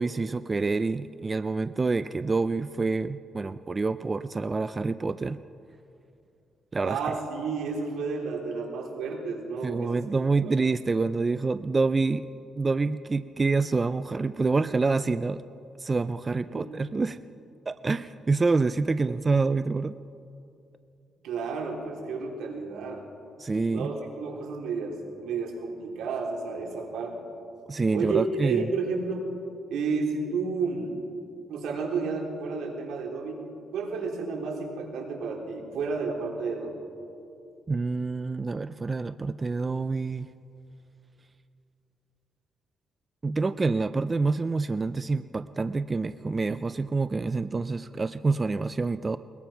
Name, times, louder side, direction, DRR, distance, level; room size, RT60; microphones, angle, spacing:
voice 1, 0.0-5.4 6.7-7.0 9.6-12.3 12.6-15.4 15.8-17.2 17.7-20.0 23.4-23.9 27.7-28.7 37.7-40.3 43.2-49.2, right 3 dB, 25° right, 13 dB, 0.4 m, -27 dB
voice 2, 6.8-10.0 10.4-10.6 16.5-16.7 21.2-23.0 23.7-27.2 27.9-29.3 29.7-31.0 31.5-33.4 33.7-36.8, right 4 dB, 85° right, 0 dB, 3.8 m, -31 dB
21.5 x 21.5 x 5.8 m, 2.6 s
cardioid pair, 110°, 0 cm